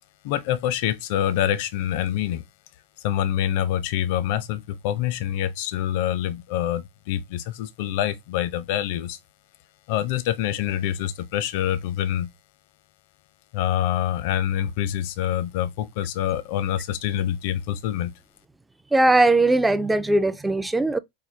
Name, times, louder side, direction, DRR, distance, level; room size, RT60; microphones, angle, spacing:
voice 1, 0.2-2.4 3.0-9.2 9.9-12.3 13.5-18.1, left 11 dB, 60° left, 0.6 m, -26 dB
voice 2, 18.9-21.0, right 2 dB, 5° right, 0.4 m, -19 dB
4.8 x 2.2 x 3.3 m
supercardioid pair, 130°, 0 cm